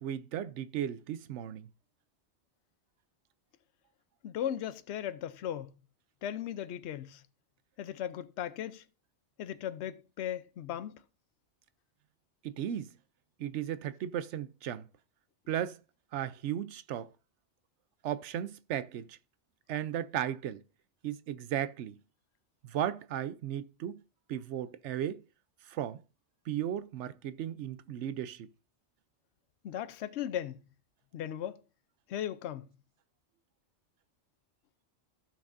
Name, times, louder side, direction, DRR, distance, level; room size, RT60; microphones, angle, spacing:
voice 1, 0.0-1.7 12.4-12.9 13.4-14.9 15.5-15.8 16.1-17.1 18.0-19.2 19.7-20.6 21.0-22.0 22.6-24.0 24.3-25.2 25.7-26.0 26.5-28.5, right 10 dB, 85° right, 0.9 m, -35 dB
voice 2, 4.2-5.7 6.2-7.2 7.8-8.8 9.4-11.0 29.6-30.6 31.1-31.6 32.1-32.7, left 10 dB, 75° left, 0.9 m, -37 dB
15.5 x 6.0 x 2.6 m
omnidirectional pair, 1.2 m